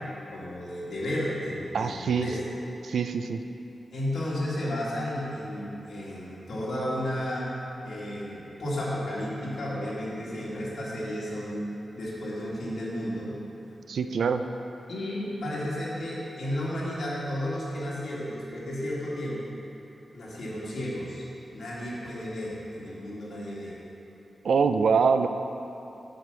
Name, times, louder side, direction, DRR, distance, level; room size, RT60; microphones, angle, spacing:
voice 1, 0.3-2.4 3.9-7.5 7.8-11.7 11.9-13.3 14.9-19.5 20.1-21.2 21.5-23.7, left 1 dB, 70° left, -8 dB, 2.1 m, -33 dB
voice 2, 1.7-2.3 2.8-3.4 13.9-14.4 24.4-25.3, right 5 dB, 85° right, 8 dB, 0.4 m, -24 dB
7.7 x 5.1 x 6.7 m, 2.9 s
wide cardioid pair, 100°, 0 cm